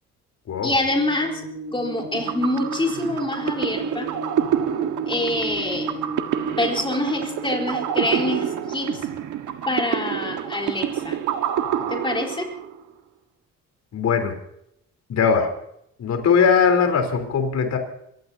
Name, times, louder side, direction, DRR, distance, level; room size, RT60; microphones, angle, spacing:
voice 1, 0.6-1.4 1.7-4.1 5.1-5.9 6.6-9.1 9.7-11.2 11.9-12.5, left 1 dB, 15° left, 0 dB, 4.2 m, -25 dB
sound 1, 0.9-8.4, right 2 dB, 55° right, 6.8 m, -34 dB
sound 2, 2.0-12.8, right 9 dB, 80° right, 1.6 m, -27 dB
voice 2, 13.9-14.4 15.1-15.5 16.0-17.8, left 6 dB, 60° left, 5 dB, 3.9 m, -20 dB
28.0 x 15.5 x 2.8 m, 0.76 s
cardioid pair, 90°, 30 cm